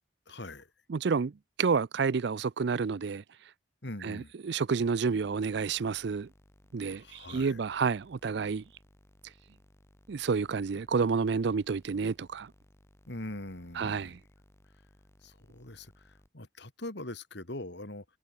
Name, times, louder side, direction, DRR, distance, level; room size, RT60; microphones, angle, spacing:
voice 1, 0.3-0.7 3.8-4.3 6.9-7.6 13.1-14.2 15.2-18.0, left 1 dB, 60° left, 3.0 m, -42 dB
voice 2, 0.9-1.3 1.6-3.2 4.0-6.3 6.7-8.6 10.1-12.5 13.8-14.2, right 5 dB, 60° right, 0.4 m, -29 dB
sound 1, 4.8-16.3, equal, 15° left, 3.2 m, -62 dB
head